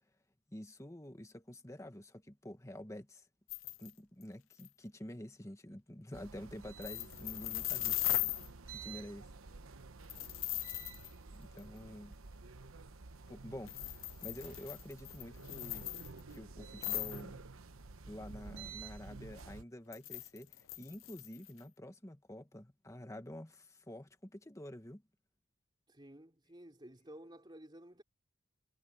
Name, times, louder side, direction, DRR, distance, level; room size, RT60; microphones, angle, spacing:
voice 1, 0.5-3.3 3.8-8.2 8.7-9.3 11.3-12.2 13.3-15.9 16.3-17.5 18.1-25.0, left 1 dB, 15° left, 1.4 m, -48 dB
sound 1, 3.5-3.9 4.2-4.3 4.5-4.7 6.8-8.5 10.1-11.1 11.6-11.7 13.6-16.4 16.8-17.2 19.9-21.6, left 17 dB, 75° left, 0.8 m, -38 dB
sound 2, 6.1-19.6, right 4 dB, 75° right, 1.0 m, -51 dB
voice 2, 25.9-28.0, right 1 dB, 20° right, 3.2 m, -54 dB
head